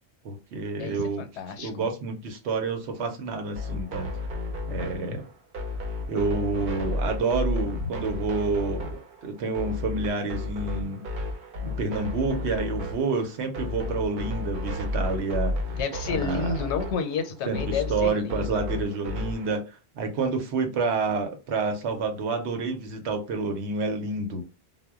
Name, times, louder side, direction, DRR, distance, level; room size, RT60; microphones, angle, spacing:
voice 1, 0.2-1.2 1.6-4.1 4.7-5.2 6.1-11.0 11.6-15.5 16.1-16.7 17.5-19.6 20.0-24.4, right 3 dB, 85° right, 0.9 m, -29 dB
voice 2, 0.8-1.7 5.1-5.2 15.8-18.6, left 5 dB, 90° left, 0.9 m, -31 dB
sound 1, 3.5-19.5, left 2 dB, 60° right, 0.7 m, -32 dB
2.1 x 2.1 x 3.4 m
omnidirectional pair, 1.1 m